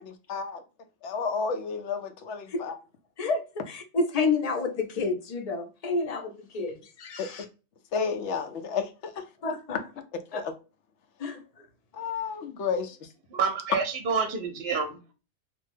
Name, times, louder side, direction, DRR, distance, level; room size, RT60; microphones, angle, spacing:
voice 1, 0.0-0.6 1.0-2.8 7.2-7.3 7.9-9.3 9.7-10.0 10.3-10.5 11.9-13.1, left 5 dB, 80° left, 0.9 m, -32 dB
voice 2, 3.7-7.4 9.4-9.8 10.3-10.4 11.2-11.4, left 3 dB, 55° left, 0.4 m, -29 dB
voice 3, 13.3-15.1, right 5 dB, 70° right, 0.8 m, -28 dB
2.7 x 2.1 x 3.2 m
omnidirectional pair, 1.2 m